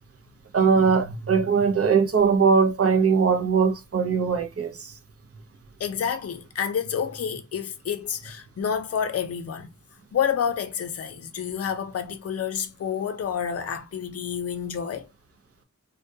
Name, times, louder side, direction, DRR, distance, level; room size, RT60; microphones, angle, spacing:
voice 1, 0.5-4.9, right 5 dB, 50° right, 0.6 m, -21 dB
voice 2, 5.8-9.7 10.1-15.1, left 7 dB, 55° left, 0.5 m, -29 dB
2.2 x 2.2 x 2.6 m
cardioid pair, 55°, 30 cm